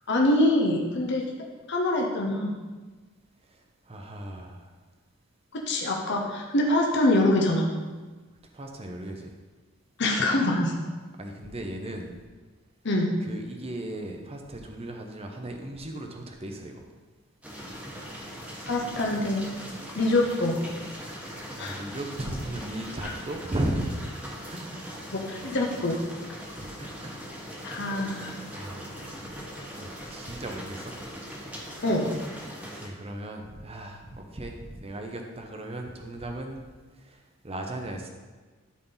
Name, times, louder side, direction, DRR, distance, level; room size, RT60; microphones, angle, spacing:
voice 1, 0.1-1.2 1.7-2.5 5.5-7.6 10.0-10.7 12.8-13.1 18.7-19.5 19.9-20.6 21.6-21.8 23.0-23.1 25.1-26.0 27.6-28.4 31.8-32.1, left 1 dB, 55° left, 0 dB, 1.0 m, -24 dB
voice 2, 3.5-4.7 8.5-9.4 11.2-12.2 13.2-16.9 21.2-24.1 24.5-24.9 26.6-27.2 27.5-27.9 28.5-29.2 29.8-31.0 32.7-36.6 36.9-38.1, right 1 dB, 30° right, 3 dB, 0.8 m, -36 dB
sound 1, 17.4-32.9, equal, 5° right, 1.2 m, -40 dB
12.5 x 4.3 x 4.0 m, 1.3 s
head